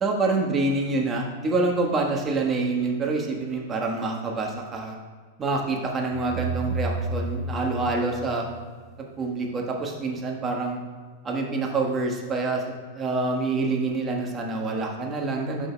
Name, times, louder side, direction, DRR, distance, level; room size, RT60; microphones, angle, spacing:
voice 1, 0.0-5.0 5.4-8.4 9.0-10.8 11.2-15.7, right 3 dB, 25° right, 0 dB, 1.4 m, -26 dB
sound 1, 6.1-9.0, right 3 dB, 10° left, 2.0 m, -31 dB
11.5 x 5.2 x 2.3 m, 1.5 s
hypercardioid pair, 105°, 0 cm